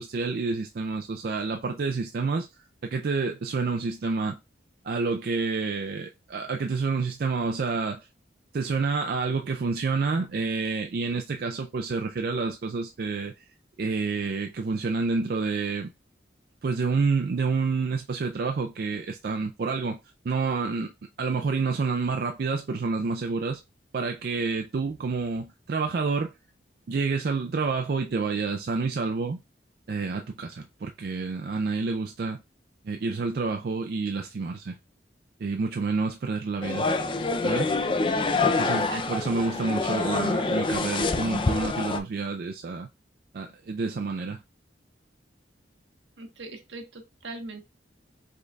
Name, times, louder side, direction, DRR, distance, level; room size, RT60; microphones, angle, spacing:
voice 1, 0.0-2.5 2.8-4.4 4.8-8.1 8.5-13.3 13.8-15.9 16.6-20.0 20.3-20.9 21.2-23.6 23.9-26.3 26.9-29.4 29.9-32.4 32.9-34.8 35.4-36.9 37.4-37.7 38.6-42.9 43.3-44.4, right 4 dB, 55° right, 0.4 m, -28 dB
sound 1, 36.6-42.0, left 3 dB, 25° left, 0.4 m, -26 dB
voice 2, 46.2-47.6, right 3 dB, 80° right, 1.1 m, -40 dB
5.0 x 3.9 x 2.3 m
head